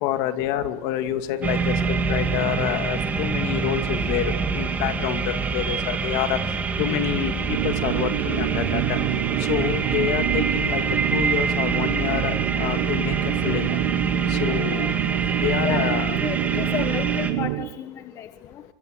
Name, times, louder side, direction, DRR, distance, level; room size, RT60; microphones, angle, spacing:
voice 1, 0.0-6.4 6.8-9.0 9.5-10.8 11.1-13.1 13.4-13.8 14.3-14.9 15.4-16.2 16.5-16.7, left 12 dB, 60° left, 8 dB, 2.5 m, -27 dB
sound 1, 1.4-17.3, right 5 dB, 15° right, 2.9 m, -26 dB
sound 2, 7.4-17.8, right 18 dB, 70° right, 1.3 m, -27 dB
voice 2, 16.2-18.6, left 9 dB, 35° left, 9 dB, 1.3 m, -32 dB
28.5 x 25.0 x 6.7 m, 0.81 s
cardioid pair, 160°, 9 cm